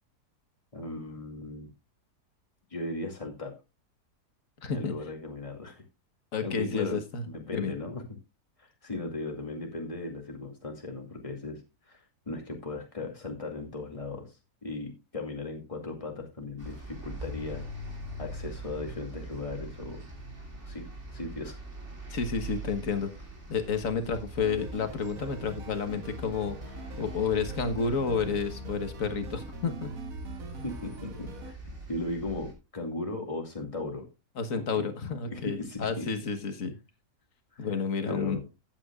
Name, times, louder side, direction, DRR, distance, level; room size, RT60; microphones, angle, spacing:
voice 1, 0.7-1.7 2.7-3.5 4.7-5.8 6.4-7.0 7.2-8.0 8.6-11.6 11.9-12.0 12.3-14.3 14.6-17.6 18.2-20.0 20.6-20.9 21.1-21.6 30.6-31.5 31.9-34.1 34.5-34.9 35.3-36.1 37.5-37.7 38.1-38.4, left 2 dB, 20° left, 2 dB, 2.3 m, -37 dB
voice 2, 4.6-4.9 6.3-7.2 7.5-7.7 22.1-23.1 23.5-26.6 27.0-29.9 34.4-36.7 37.6-38.4, left 5 dB, 55° left, 8 dB, 1.6 m, -30 dB
sound 1, 16.6-32.5, right 1 dB, 45° right, 3.2 m, -43 dB
sound 2, 24.4-31.5, right 2 dB, 60° right, 1.7 m, -42 dB
15.0 x 8.5 x 2.4 m, 0.26 s
omnidirectional pair, 1.7 m